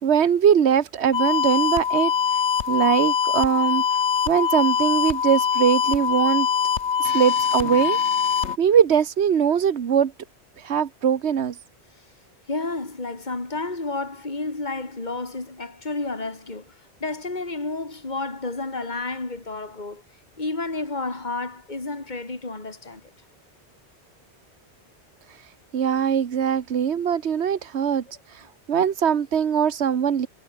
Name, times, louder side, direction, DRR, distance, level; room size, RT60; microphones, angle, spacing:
voice 1, 0.0-2.1 2.7-3.8 4.3-6.5 7.0-8.0 8.6-10.1 10.6-11.6 25.7-28.0 28.7-30.3, right 8 dB, 75° right, 1.3 m, -21 dB
sound 1, 1.1-8.6, left 7 dB, 80° left, 1.4 m, -23 dB
voice 2, 12.5-20.0 20.4-23.0, left 3 dB, 40° left, 3.1 m, -31 dB
omnidirectional pair, 1.1 m